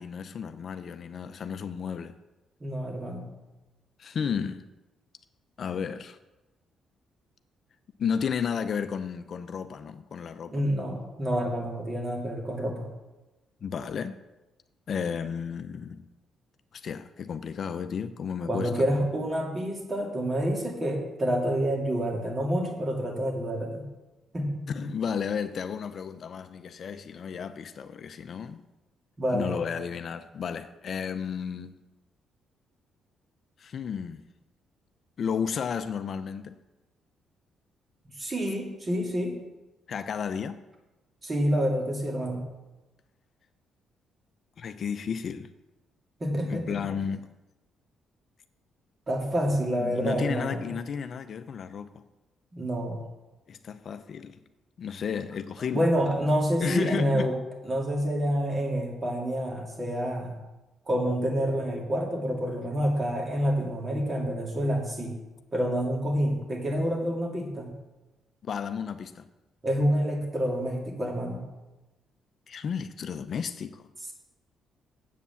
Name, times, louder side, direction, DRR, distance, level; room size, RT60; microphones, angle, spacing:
voice 1, 0.0-2.1 4.0-4.6 5.6-6.2 8.0-10.6 13.6-14.2 14.9-16.0 16.7-19.0 24.7-28.6 29.3-31.7 33.6-34.2 35.2-36.5 39.9-40.6 44.6-45.5 46.5-47.3 49.8-52.0 53.5-54.4 54.8-55.8 56.6-57.3 68.4-69.2 72.5-73.8, left 7 dB, 55° left, 0.5 m, -33 dB
voice 2, 2.6-3.3 10.5-12.9 18.5-23.9 24.3-24.9 29.2-29.6 38.2-39.4 41.2-42.4 46.2-46.8 49.1-50.6 52.5-53.0 55.7-57.4 57.6-60.3 60.9-65.1 65.5-67.7 69.6-71.4, equal, 30° right, 2.7 m, -28 dB
8.2 x 7.2 x 7.0 m
cardioid pair, 80°, 0 cm